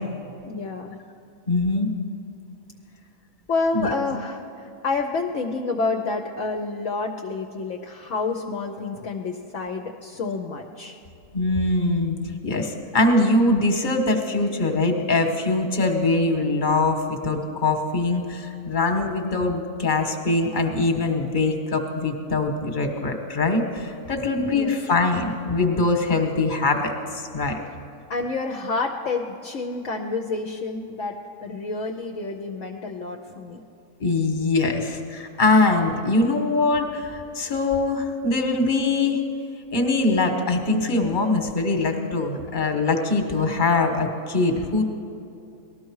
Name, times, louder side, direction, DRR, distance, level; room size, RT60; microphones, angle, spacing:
voice 1, 0.4-1.0 3.5-11.0 24.5-24.8 28.1-33.6, left 3 dB, 60° left, 2 dB, 1.1 m, -29 dB
voice 2, 1.5-1.9 3.7-3.9 11.3-12.2 12.4-27.6 34.0-39.2 39.7-44.8, left 2 dB, 35° left, 5 dB, 1.4 m, -22 dB
19.0 x 13.0 x 4.8 m, 2.6 s
omnidirectional pair, 1.5 m